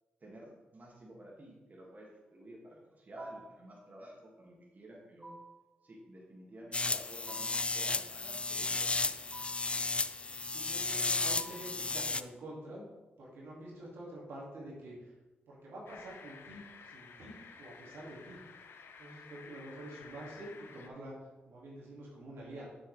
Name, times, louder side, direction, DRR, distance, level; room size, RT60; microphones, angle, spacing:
voice 1, 0.2-5.4 5.8-9.1, right 1 dB, 40° right, -3 dB, 1.8 m, -51 dB
sound 1, 3.2-3.7 5.2-5.7 7.3-7.7 9.3-9.8 11.4-11.8, right 2 dB, 10° right, 1.1 m, -51 dB
sound 2, 6.7-12.2, left 3 dB, 30° left, 0.3 m, -34 dB
voice 2, 10.5-12.9 13.2-15.1 15.5-18.4 19.0-21.1 21.5-22.7, right 1 dB, 80° right, -5 dB, 2.1 m, -47 dB
sound 3, 15.9-20.9, left 5 dB, 75° left, 0.6 m, -53 dB
6.7 x 6.3 x 3.2 m, 1.2 s
cardioid pair, 55°, 4 cm